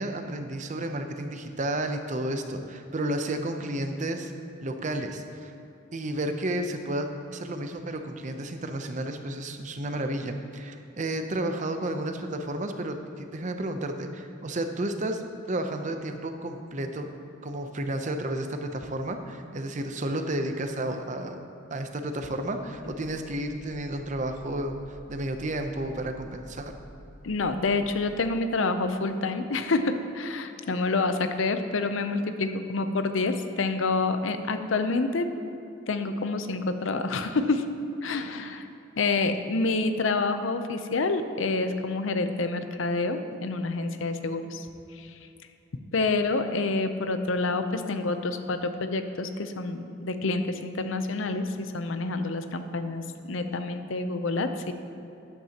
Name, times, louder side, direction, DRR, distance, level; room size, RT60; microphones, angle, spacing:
voice 1, 0.0-4.3 4.6-5.5 5.9-15.2 15.5-17.1 17.4-21.4 21.7-24.8 25.1-26.7, right 1 dB, 40° right, 6 dB, 0.6 m, -32 dB
sound 1, 22.7-28.1, equal, 55° right, 1.2 m, -50 dB
voice 2, 27.2-35.3 35.9-37.7 38.0-38.7 39.0-44.7 45.0-45.1 45.9-54.7, left 3 dB, 75° left, 9 dB, 0.6 m, -28 dB
13.0 x 10.5 x 2.9 m, 2.8 s
head